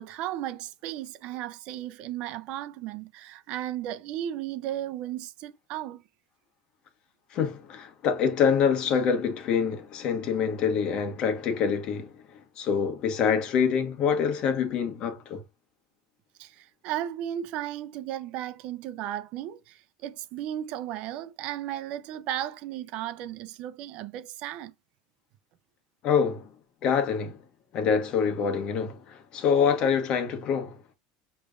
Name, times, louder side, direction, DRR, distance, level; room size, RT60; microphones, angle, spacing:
voice 1, 0.0-6.0 16.4-24.7, right 12 dB, 55° right, 0.6 m, -35 dB
voice 2, 7.3-15.4 26.0-26.5 26.8-27.4 27.7-30.8, left 6 dB, 45° left, 1.3 m, -26 dB
6.3 x 3.2 x 2.5 m
supercardioid pair, 135°, 2 cm